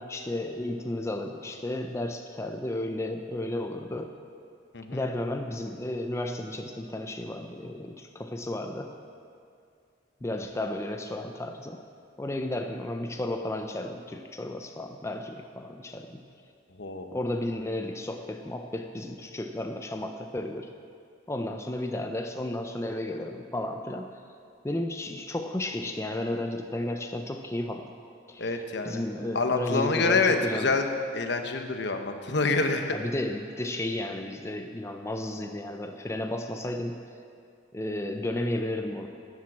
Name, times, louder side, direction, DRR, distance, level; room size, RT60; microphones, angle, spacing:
voice 1, 0.0-4.2 4.9-8.9 10.2-11.8 12.2-16.2 17.1-20.7 21.3-24.2 24.6-27.9 28.3-28.5 28.8-30.8 32.9-37.0 37.7-39.1, left 1 dB, 15° left, 5 dB, 0.5 m, -33 dB
voice 2, 16.8-17.2 28.4-29.0 29.3-30.8 31.1-33.0, left 3 dB, 65° left, 6 dB, 0.9 m, -26 dB
12.5 x 7.4 x 7.3 m, 2.4 s
head